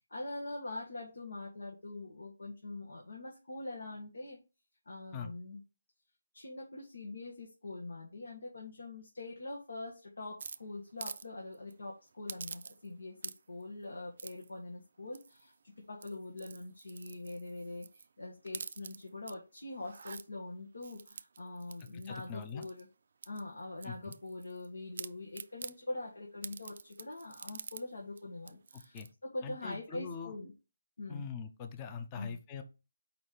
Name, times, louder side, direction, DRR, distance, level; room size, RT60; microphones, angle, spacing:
voice 1, 0.1-4.4 4.8-5.6 6.3-22.9 23.2-30.5 31.0-31.2 32.1-32.4, left 2 dB, 80° left, 0 dB, 1.5 m, -44 dB
sound 1, 10.4-11.3 11.5-11.7 12.3-12.9 13.2-13.6 14.2-14.5 15.1-15.5 15.9-18.1 18.4-19.3 19.8-20.2 20.8-22.8 23.2-24.7 25.0-25.8 26.4-27.8 28.2-28.3 28.5-29.1, right 5 dB, 50° right, 0.3 m, -46 dB
voice 2, 21.9-22.7 23.9-24.1 28.9-29.1 29.4-30.3 31.1-32.6, left 6 dB, 20° left, 7 dB, 0.6 m, -42 dB
4.5 x 4.2 x 5.0 m, 0.31 s
hypercardioid pair, 165°, 0 cm